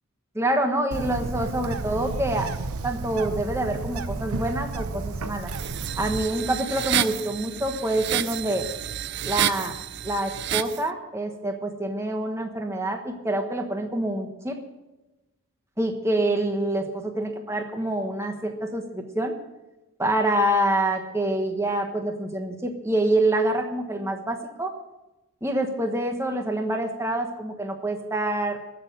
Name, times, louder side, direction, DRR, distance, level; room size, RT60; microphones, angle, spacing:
voice 1, 0.3-2.5 2.8-5.5 6.0-8.6 9.2-9.7 10.0-14.6 15.8-19.3 20.0-24.7 25.4-28.8, right 1 dB, 10° right, 4 dB, 1.2 m, -26 dB
Bird, 0.9-6.2, right 3 dB, 85° right, 0.8 m, -32 dB
sound 1, 5.5-10.8, right 11 dB, 50° right, 0.4 m, -29 dB
14.0 x 6.7 x 9.2 m, 1.0 s
head